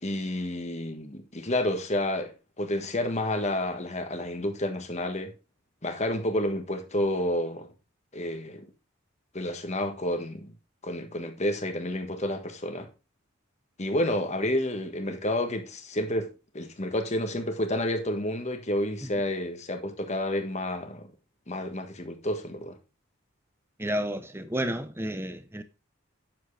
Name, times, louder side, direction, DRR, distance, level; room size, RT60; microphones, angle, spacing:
voice 1, 0.0-2.3 2.6-5.3 5.8-7.7 8.1-8.6 9.3-10.5 10.8-12.9 13.8-21.1 21.5-22.8, left 1 dB, 30° left, 1.5 m, -30 dB
voice 2, 23.8-25.6, equal, 10° right, 0.8 m, -31 dB
9.3 x 7.4 x 3.4 m
head